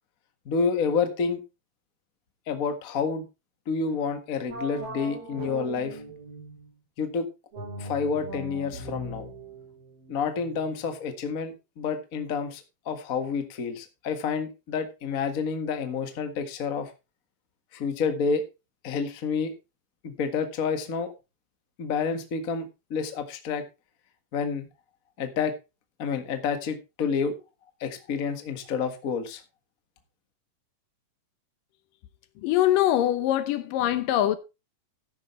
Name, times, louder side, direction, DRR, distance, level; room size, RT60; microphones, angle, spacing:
voice 1, 0.4-1.4 2.5-3.2 3.7-6.0 7.0-7.3 7.8-9.3 10.1-16.9 17.7-18.4 18.8-19.5 20.0-21.1 21.8-23.6 24.3-24.6 25.2-25.5 26.0-27.3 27.8-29.4, left 5 dB, 40° left, 1.3 m, -29 dB
sound 1, 4.5-6.8 7.5-10.9, right 2 dB, 45° right, 5.3 m, -40 dB
voice 2, 32.4-34.4, left 13 dB, 75° left, 2.4 m, -23 dB
13.0 x 10.0 x 3.2 m
omnidirectional pair, 4.1 m